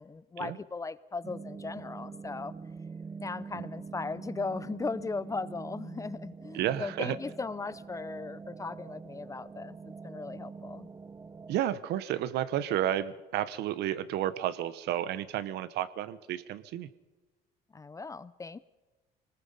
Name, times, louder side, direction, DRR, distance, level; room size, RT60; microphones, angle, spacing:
voice 1, 0.0-2.5 3.2-10.9 17.7-18.6, left 4 dB, 20° left, 17 dB, 0.6 m, -38 dB
sound 1, 1.2-11.6, right 5 dB, 20° right, 0.7 m, -44 dB
voice 2, 6.5-7.2 11.5-16.9, right 12 dB, 80° right, 15 dB, 0.9 m, -32 dB
24.5 x 19.5 x 5.5 m, 1.2 s
cardioid pair, 110°, 17 cm